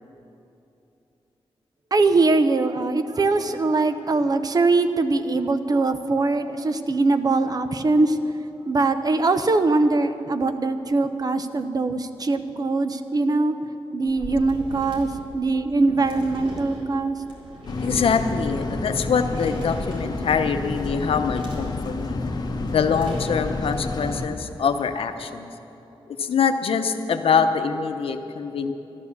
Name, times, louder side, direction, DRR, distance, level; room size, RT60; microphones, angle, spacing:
voice 1, 1.9-8.2 8.7-13.6 13.9-17.2, right 3 dB, 40° right, 10 dB, 0.7 m, -22 dB
sound 1, 14.0-23.7, equal, 65° right, 3.7 m, -39 dB
sound 2, 17.7-24.3, left 3 dB, 45° left, 1.1 m, -29 dB
voice 2, 17.8-22.2 22.7-25.5 26.2-28.7, left 6 dB, 75° left, 8 dB, 0.8 m, -24 dB
13.0 x 12.0 x 7.2 m, 2.9 s
wide cardioid pair, 105°, 10 cm